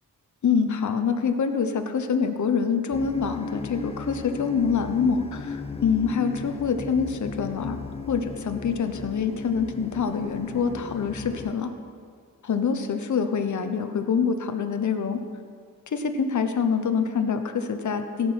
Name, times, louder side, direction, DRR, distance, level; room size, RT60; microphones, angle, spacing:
voice 1, 0.4-7.8 8.1-11.7 12.5-15.2 15.9-18.3, left 6 dB, 55° left, 7 dB, 0.9 m, -25 dB
sound 1, 2.9-11.5, left 4 dB, 20° left, 0.5 m, -36 dB
16.5 x 6.2 x 5.5 m, 2.1 s
wide cardioid pair, 100°, 34 cm